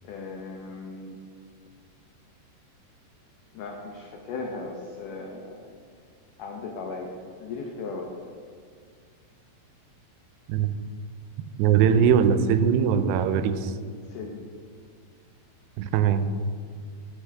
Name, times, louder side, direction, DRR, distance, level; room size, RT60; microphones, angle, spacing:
voice 1, 0.0-1.2 3.5-5.6 6.4-8.1 14.1-14.4, left 3 dB, 90° left, 1 dB, 1.8 m, -37 dB
voice 2, 11.6-13.7 15.8-16.3, right 7 dB, 85° right, 10 dB, 2.6 m, -21 dB
13.5 x 5.7 x 3.4 m, 2.1 s
omnidirectional pair, 4.7 m